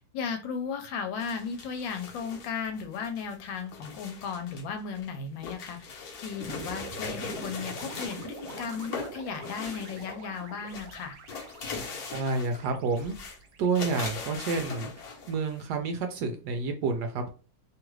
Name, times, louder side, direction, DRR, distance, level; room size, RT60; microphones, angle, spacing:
voice 1, 0.1-11.2, left 6 dB, 85° left, 6 dB, 1.4 m, -35 dB
sound 1, 1.2-4.6 4.9-10.4 10.7-12.7 13.0-13.4 13.8-15.6, left 5 dB, 60° left, 1.2 m, -40 dB
sound 2, 6.4-14.7, right 5 dB, 90° right, 0.7 m, -45 dB
voice 2, 12.1-13.2 13.6-14.9 15.3-17.3, right 4 dB, 75° right, 5 dB, 1.0 m, -29 dB
3.1 x 2.4 x 3.0 m, 0.35 s
omnidirectional pair, 2.0 m